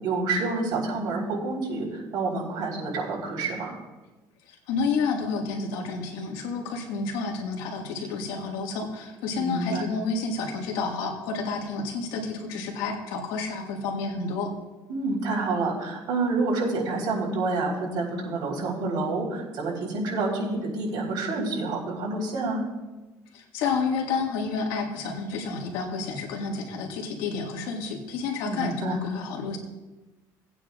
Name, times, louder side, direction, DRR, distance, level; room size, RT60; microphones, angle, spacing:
voice 1, 0.0-3.8 9.3-9.8 14.9-22.6 28.5-29.0, right 3 dB, 65° right, -3 dB, 3.8 m, -28 dB
voice 2, 4.5-14.5 23.3-29.6, left 4 dB, 90° left, 1 dB, 1.8 m, -30 dB
18.0 x 8.9 x 2.4 m, 1.1 s
cardioid pair, 100°, 8 cm